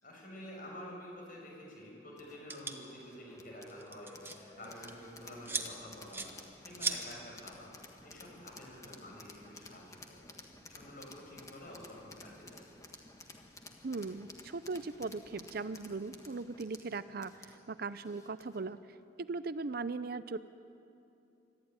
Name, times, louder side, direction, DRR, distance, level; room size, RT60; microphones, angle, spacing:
voice 1, 0.0-10.2 10.7-12.6, left 1 dB, 50° left, -2 dB, 7.4 m, -49 dB
sound 1, 2.2-18.7, left 2 dB, 20° left, 1.7 m, -54 dB
sound 2, 2.5-2.8 3.7-4.4 4.6-4.9 5.5-5.7 6.1-6.3 6.8-7.0, right 3 dB, 10° right, 1.4 m, -35 dB
voice 2, 13.8-18.8 19.2-20.4, right 3 dB, 55° right, 14 dB, 0.6 m, -39 dB
25.5 x 14.0 x 9.6 m, 2.7 s
head